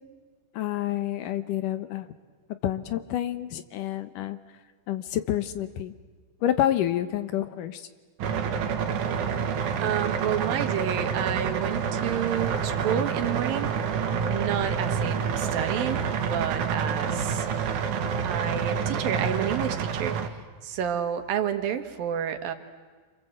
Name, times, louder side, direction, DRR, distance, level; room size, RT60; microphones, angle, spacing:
voice 1, 0.5-2.1 2.6-4.4 4.9-5.9 6.4-7.9, left 12 dB, 75° left, 11 dB, 2.6 m, -28 dB
sound 1, 8.2-20.3, right 6 dB, 65° right, 2.9 m, -28 dB
voice 2, 9.8-13.7 14.3-17.5 18.2-20.3 20.6-22.5, right 9 dB, 90° right, 7 dB, 3.3 m, -30 dB
28.0 x 26.5 x 7.9 m, 1.5 s
omnidirectional pair, 4.0 m